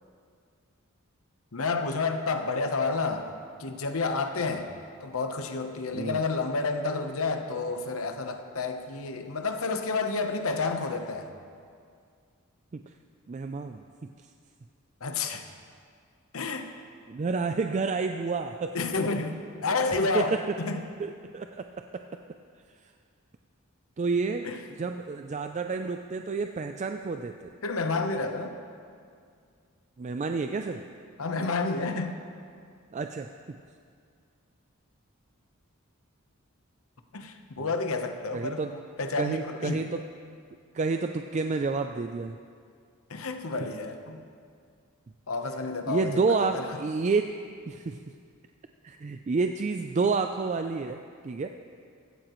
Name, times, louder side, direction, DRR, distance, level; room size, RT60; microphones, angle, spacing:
voice 1, 1.5-3.3 3.6-4.7 5.0-11.3 15.0-15.4 16.3-16.7 18.7-20.8 24.4-24.6 27.6-28.6 31.2-32.1 37.1-39.9 43.1-44.2 45.3-46.7, left 3 dB, 70° left, 6 dB, 1.0 m, -30 dB
voice 2, 13.3-13.8 17.1-18.8 20.1-20.4 21.0-21.7 24.0-24.5 24.8-27.3 30.0-30.8 32.9-33.6 37.6-37.7 38.3-38.7 39.2-40.0 40.7-42.4 45.9-47.3 47.7-48.0 48.8-51.5, right 4 dB, 35° right, 6 dB, 0.3 m, -29 dB
16.5 x 13.5 x 3.1 m, 2.2 s
head